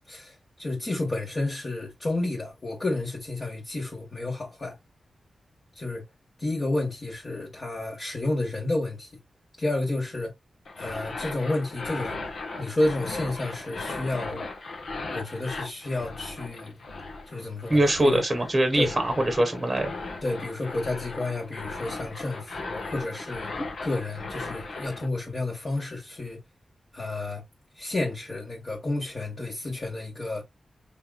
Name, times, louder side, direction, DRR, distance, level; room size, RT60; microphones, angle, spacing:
voice 1, 0.1-4.8 5.8-6.0 6.4-9.1 9.6-10.3 10.8-12.2 12.6-14.5 15.1-16.7 17.3-18.2 18.7-18.9 20.2-23.5 23.8-26.4 26.9-27.4 27.8-30.4, left 2 dB, 30° left, 1.7 m, -30 dB
sound 1, 10.6-25.1, left 3 dB, 65° left, 1.4 m, -37 dB
voice 2, 17.7-19.9, right 1 dB, 20° right, 1.2 m, -23 dB
5.7 x 3.8 x 2.5 m
wide cardioid pair, 165°, 0 cm